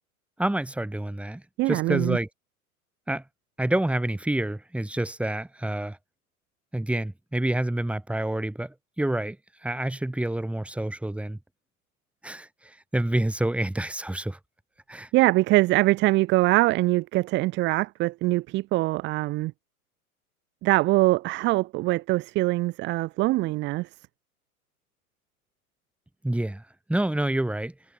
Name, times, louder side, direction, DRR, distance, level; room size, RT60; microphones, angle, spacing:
voice 1, 0.4-2.3 3.1-3.2 3.6-6.0 6.7-9.4 9.6-11.4 12.2-14.4 14.9-15.1 26.2-26.6 26.9-27.7, right 1 dB, 5° right, 7.0 m, -28 dB
voice 2, 1.6-2.2 15.1-19.5 20.6-23.9, right 19 dB, 25° right, 1.1 m, -23 dB
figure-of-eight pair, 100°, 44 cm